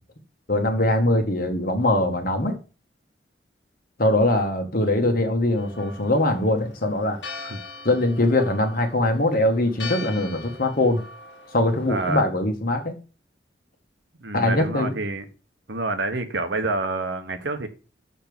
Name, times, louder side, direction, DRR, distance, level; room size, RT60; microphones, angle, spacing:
voice 1, 0.5-2.6 4.0-7.2 7.8-11.0 11.5-12.9 14.3-14.9, left 1 dB, 50° left, 1.9 m, -22 dB
Church bell, 5.6-12.2, left 4 dB, 75° left, 1.7 m, -41 dB
voice 2, 11.9-12.2 14.2-15.2 15.7-17.7, right 2 dB, 75° right, 1.4 m, -27 dB
6.7 x 5.9 x 6.9 m
head